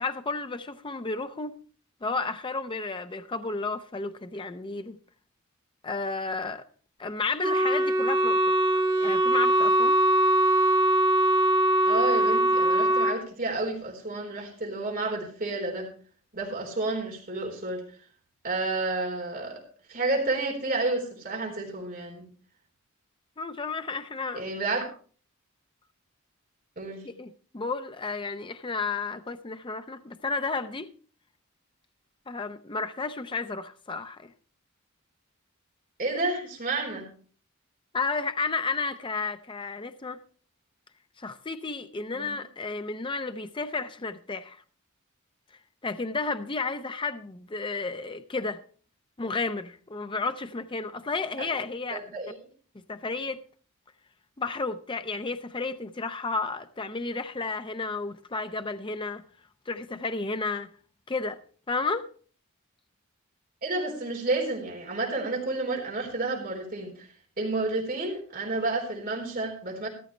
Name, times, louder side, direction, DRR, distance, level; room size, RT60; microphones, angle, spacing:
voice 1, 0.0-1.5 2.0-5.0 5.8-6.6 7.0-8.5 9.0-10.0 23.4-24.5 27.0-30.9 32.3-34.3 37.9-40.2 41.2-44.6 45.8-48.6 49.2-52.0 52.7-53.4 54.4-59.2 59.7-60.7 61.1-61.4 61.7-62.1, left 3 dB, 25° left, 0.6 m, -32 dB
Wind instrument woodwind instrument, 7.4-13.2, right 1 dB, 25° right, 1.7 m, -22 dB
voice 2, 11.8-15.9 16.3-17.8 18.4-19.6 19.9-22.3 24.3-24.8 26.8-27.1 36.0-37.1 42.1-42.4 51.4-51.5 51.9-52.4 63.6-67.1 67.4-69.9, right 2 dB, 45° right, 4.1 m, -30 dB
14.5 x 13.0 x 3.2 m
head